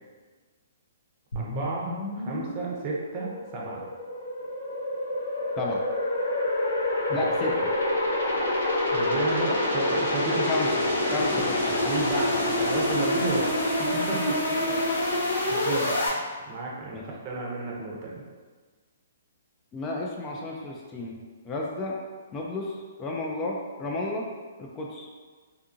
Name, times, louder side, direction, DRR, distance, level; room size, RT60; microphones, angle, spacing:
sound 1, 1.3-16.1, left 1 dB, 85° left, 0.7 m, -27 dB
voice 1, 1.3-3.8 7.1-7.5 8.9-10.5 11.8-14.2 15.5-15.9 16.5-18.2, right 3 dB, 35° right, -3 dB, 0.6 m, -32 dB
voice 2, 7.1-7.5 10.5-10.7 11.1-11.8 14.7-15.0 16.9-17.1 19.7-21.2 21.4-22.0 22.3-24.3 24.6-25.1, left 2 dB, 20° left, -2 dB, 0.3 m, -32 dB
2.7 x 2.4 x 2.5 m, 1.4 s
hypercardioid pair, 150°, 0 cm